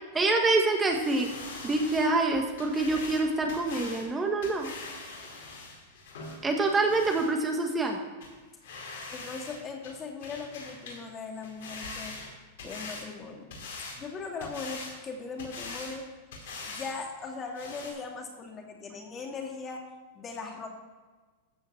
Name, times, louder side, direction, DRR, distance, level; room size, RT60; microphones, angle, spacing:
voice 1, 0.1-1.3 1.6-4.7 6.4-8.0, right 3 dB, 15° right, 3 dB, 1.7 m, -26 dB
sound 1, 0.9-7.3 7.8-7.9 8.2-8.3 8.6-9.6 9.8-11.0 11.3-13.1 13.5-14.0 14.4-15.0 15.4-16.0 16.3-16.9 17.2-17.3 17.6-17.9, left 3 dB, 75° left, 4.4 m, -42 dB
voice 2, 9.1-12.2 12.6-13.5 14.0-16.1 16.7-19.9 20.1-20.7, left 4 dB, 30° left, 2 dB, 2.6 m, -39 dB
14.0 x 5.6 x 7.1 m, 1.3 s
hypercardioid pair, 110°, 0 cm